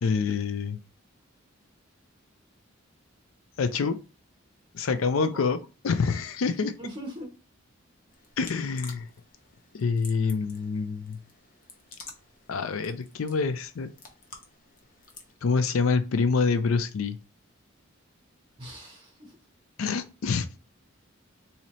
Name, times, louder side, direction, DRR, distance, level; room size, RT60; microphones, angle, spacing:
voice 1, 0.0-0.8 3.6-4.0 4.7-5.6 5.8-6.7 8.4-9.1 9.7-11.2 12.5-13.9 15.4-17.2 19.8-20.5, left 5 dB, 85° left, 0.5 m, -26 dB
voice 2, 4.8-5.4 6.8-7.3 18.6-19.3, equal, 25° right, 1.1 m, -41 dB
sound 1, 8.1-15.3, left 4 dB, 45° left, 0.8 m, -50 dB
4.1 x 2.8 x 3.0 m
head